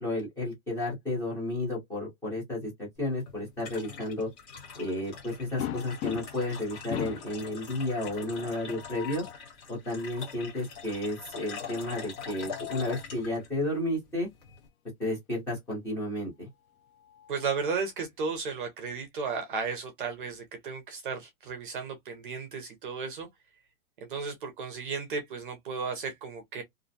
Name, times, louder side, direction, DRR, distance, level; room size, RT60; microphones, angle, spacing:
voice 1, 0.0-4.3 4.8-9.2 9.7-14.3 15.0-16.5, left 1 dB, 5° left, 0.6 m, -32 dB
sound 1, 3.0-14.7, left 5 dB, 25° left, 0.9 m, -44 dB
sound 2, 5.6-6.5 6.9-7.4 8.6-9.4 12.0-13.0 14.5-14.6 15.0-15.1 16.6-17.9, left 13 dB, 85° left, 0.6 m, -39 dB
voice 2, 17.3-23.3 24.0-26.6, right 5 dB, 40° right, 0.5 m, -34 dB
2.4 x 2.1 x 2.6 m
hypercardioid pair, 170°, 42 cm